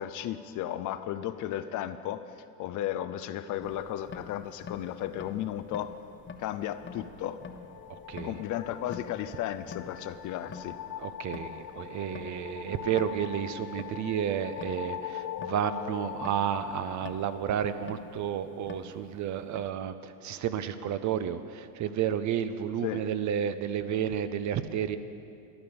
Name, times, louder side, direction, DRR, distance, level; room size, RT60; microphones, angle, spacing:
voice 1, 0.0-2.3 2.6-5.9 6.4-7.4 8.2-10.8 22.8-23.1, left 12 dB, 40° left, 11 dB, 0.6 m, -34 dB
sound 1, 3.6-19.7, left 5 dB, 25° left, 1.1 m, -48 dB
sound 2, 6.6-18.0, left 10 dB, 70° left, 0.9 m, -42 dB
voice 2, 11.0-25.0, right 9 dB, 35° right, 11 dB, 0.8 m, -31 dB
13.0 x 11.0 x 6.9 m, 2.5 s
hypercardioid pair, 80°, 49 cm